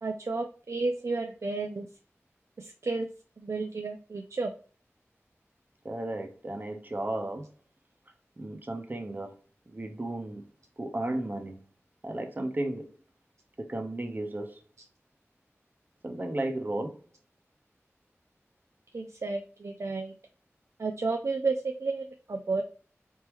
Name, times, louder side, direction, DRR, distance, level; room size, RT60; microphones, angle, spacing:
voice 1, 0.0-1.9 2.6-3.1 3.4-4.5 18.9-20.1 20.8-22.6, right 3 dB, 75° right, 0.5 m, -32 dB
voice 2, 5.8-7.5 8.4-9.3 9.7-10.4 10.8-11.6 12.0-12.9 13.6-14.6 16.0-17.0, right 1 dB, 40° right, 1.0 m, -34 dB
4.4 x 3.6 x 3.1 m
wide cardioid pair, 65°, 5 cm